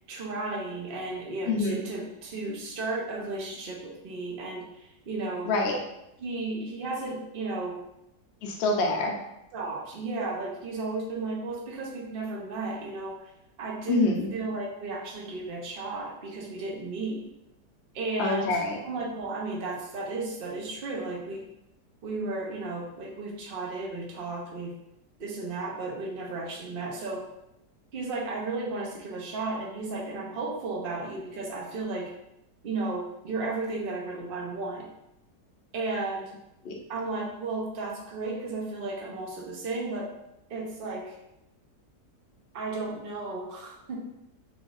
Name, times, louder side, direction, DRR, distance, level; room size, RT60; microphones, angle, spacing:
voice 1, 0.1-5.5 6.2-7.8 9.5-13.1 13.6-14.0 14.3-17.2 17.9-21.5 22.0-24.7 25.2-27.2 27.9-32.1 32.6-34.9 35.7-36.3 36.9-40.1 40.5-41.2 42.5-44.0, right 3 dB, 45° right, -2 dB, 0.8 m, -34 dB
voice 2, 1.5-1.8 5.5-5.8 8.4-9.1 13.9-14.3 18.2-18.8 36.6-36.7, left 3 dB, 65° left, 0 dB, 0.6 m, -26 dB
4.0 x 3.3 x 2.5 m, 0.86 s
omnidirectional pair, 1.8 m